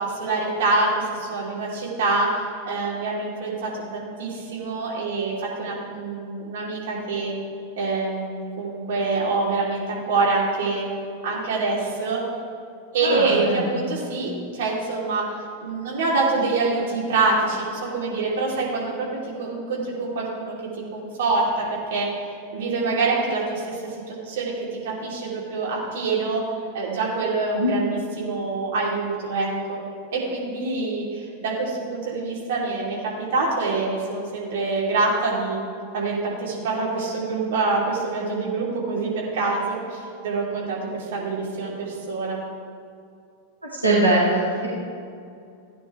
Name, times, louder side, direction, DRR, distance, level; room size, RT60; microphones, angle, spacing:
voice 1, 0.0-7.3 7.8-10.9 11.2-12.2 12.9-20.5 20.9-22.2 22.5-23.9 24.2-26.4 26.7-29.8 30.1-35.6 35.9-42.4, right 3 dB, 55° right, -5 dB, 3.3 m, -25 dB
voice 2, 13.0-13.8 27.5-27.7 43.6-44.7, right 1 dB, 90° right, -8 dB, 2.2 m, -22 dB
16.5 x 9.8 x 3.4 m, 2.4 s
figure-of-eight pair, 90°, 0 cm